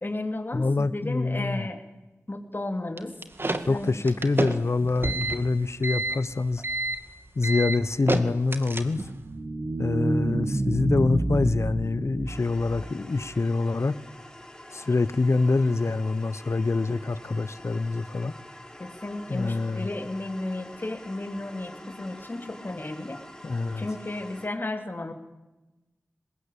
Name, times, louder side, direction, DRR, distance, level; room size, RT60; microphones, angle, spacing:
voice 1, 0.0-1.8 2.3-3.1 3.7-4.0 18.8-23.2 23.8-25.1, left 2 dB, 40° left, 3.2 m, -33 dB
voice 2, 0.5-1.7 3.7-6.6 7.4-9.0 9.8-13.9 14.7-18.3 19.3-19.9 23.4-23.9, left 3 dB, 60° left, 1.0 m, -25 dB
sound 1, 3.0-9.2, right 2 dB, 45° right, 2.1 m, -30 dB
sound 2, 8.9-13.3, right 2 dB, 60° right, 1.9 m, -29 dB
sound 3, 12.3-24.5, left 1 dB, 15° left, 4.4 m, -46 dB
24.0 x 20.5 x 8.6 m
cardioid pair, 50°, 5 cm